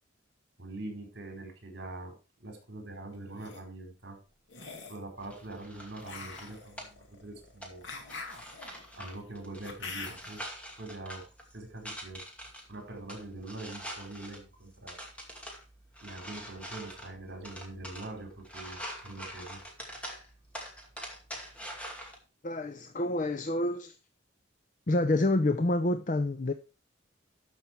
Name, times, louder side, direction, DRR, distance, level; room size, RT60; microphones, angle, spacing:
voice 1, 0.6-2.1 2.4-4.2 4.9-7.8 9.0-10.5 10.8-11.3 11.5-12.2 12.7-15.0 16.0-18.8 19.0-19.6, right 2 dB, 60° right, 4.7 m, -43 dB
sound 1, 3.1-3.6 4.5-5.1 6.0-10.4, left 4 dB, 65° left, 2.2 m, -44 dB
sound 2, 5.2-22.2, equal, 5° left, 2.3 m, -45 dB
voice 2, 22.4-24.0 24.9-26.5, left 2 dB, 40° left, 0.6 m, -28 dB
13.0 x 5.9 x 4.6 m
head